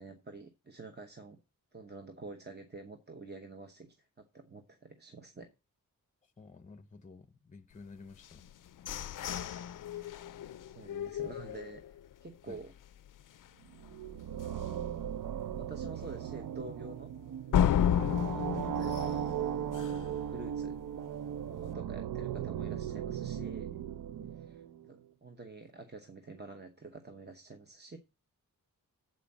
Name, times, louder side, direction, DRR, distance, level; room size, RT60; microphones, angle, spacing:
voice 1, 0.0-1.4 1.7-5.5 9.8-10.1 10.7-12.0 12.2-12.7 14.4-15.0 15.6-17.1 18.0-19.4 19.8-20.8 21.5-23.8 24.3-24.6 24.9-28.0, right 3 dB, 30° right, 1.0 m, -48 dB
voice 2, 6.4-8.4 12.5-12.6 17.9-18.2 21.7-21.9 24.2-24.3, left 4 dB, 25° left, 0.6 m, -52 dB
sound 1, 8.2-12.1 12.6-12.7 13.1-13.5 13.8-13.9 14.4-14.5 17.5-20.2, left 9 dB, 70° left, 0.5 m, -32 dB
sound 2, 13.7-24.9, right 9 dB, 80° right, 0.5 m, -37 dB
7.6 x 5.0 x 7.2 m
wide cardioid pair, 90°, 34 cm